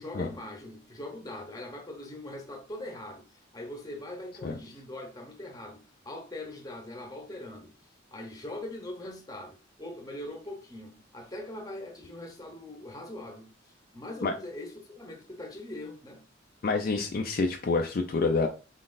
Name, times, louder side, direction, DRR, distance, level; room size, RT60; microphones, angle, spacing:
voice 1, 0.0-7.7 8.1-16.2, left 1 dB, 20° left, 0.8 m, -41 dB
voice 2, 16.6-18.5, left 3 dB, 50° left, 0.4 m, -27 dB
4.0 x 3.8 x 2.5 m
head